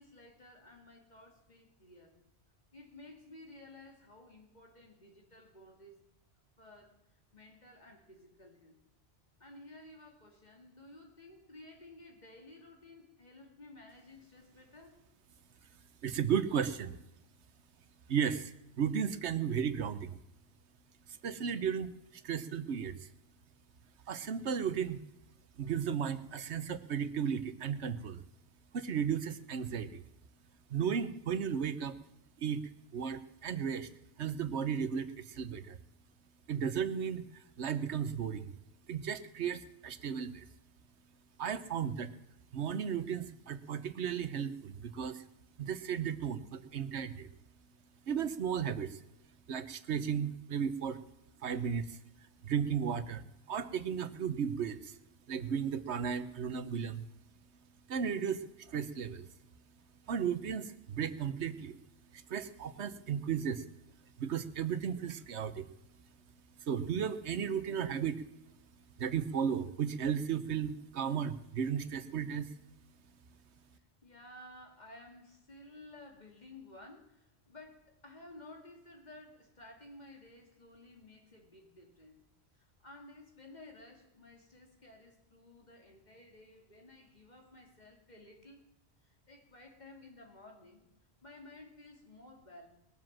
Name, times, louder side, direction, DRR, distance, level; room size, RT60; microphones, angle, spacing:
voice 1, 0.0-2.2 2.7-6.0 6.6-7.0 7.3-8.8 9.4-15.0 73.7-82.2 82.5-88.6 89.0-90.9 91.2-92.7, left 2 dB, 40° left, 2 dB, 2.7 m, -54 dB
voice 2, 16.0-17.0 18.1-20.2 21.2-23.0 24.1-25.0 25.6-28.2 28.7-30.0 30.7-32.0 32.4-33.9 34.2-35.8 36.5-38.5 38.9-40.4 41.4-42.1 42.5-45.2 45.6-47.3 48.1-49.0 49.5-51.0 51.4-52.0 52.4-55.0 55.3-57.0 57.9-59.3 60.1-61.8 62.1-63.6 64.2-65.7 66.7-68.2 69.0-72.5, right 7 dB, 85° right, 13 dB, 1.2 m, -35 dB
20.5 x 7.7 x 7.4 m, 0.87 s
omnidirectional pair, 1.1 m